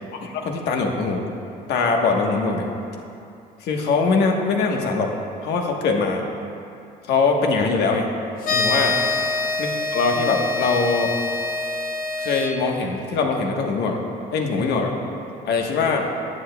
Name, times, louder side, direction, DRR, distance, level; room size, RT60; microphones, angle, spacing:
voice 1, 0.2-1.2 1.7-2.7 3.6-5.1 5.4-6.2 7.1-8.1 8.5-9.0 9.6-11.1 12.2-14.0 14.3-14.9 15.4-16.1, left 4 dB, 75° left, 2 dB, 1.2 m, -22 dB
sound 1, 8.4-12.5, left 3 dB, 55° left, 1.0 m, -25 dB
14.5 x 9.7 x 2.3 m, 2.6 s
cardioid pair, 110°, 17 cm